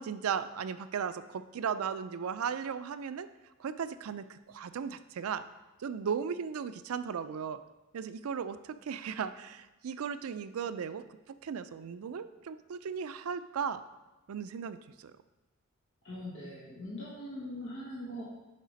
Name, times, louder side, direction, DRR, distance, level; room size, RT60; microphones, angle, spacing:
voice 1, 0.0-3.3 3.6-5.4 5.8-7.6 7.9-11.0 11.4-13.8 14.3-15.1, right 7 dB, 85° right, 12 dB, 0.4 m, -36 dB
voice 2, 16.0-18.2, left 1 dB, 60° left, -7 dB, 1.4 m, -41 dB
6.5 x 4.9 x 5.2 m, 1.1 s
head